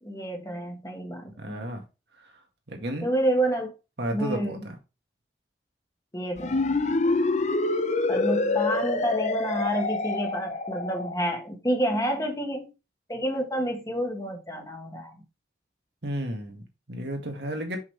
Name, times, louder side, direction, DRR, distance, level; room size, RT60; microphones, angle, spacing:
voice 1, 0.0-1.6 3.0-3.7 4.1-4.6 6.1-6.8 7.0-7.2 8.1-12.7 13.1-15.1, right 1 dB, 15° left, 1.4 m, -29 dB
voice 2, 1.4-1.8 2.2-2.3 2.7-3.1 4.0-4.8 16.0-17.8, right 1 dB, 65° right, 1.8 m, -33 dB
sound 1, 6.4-11.2, left 3 dB, 40° left, 0.6 m, -26 dB
6.2 x 5.8 x 3.3 m
head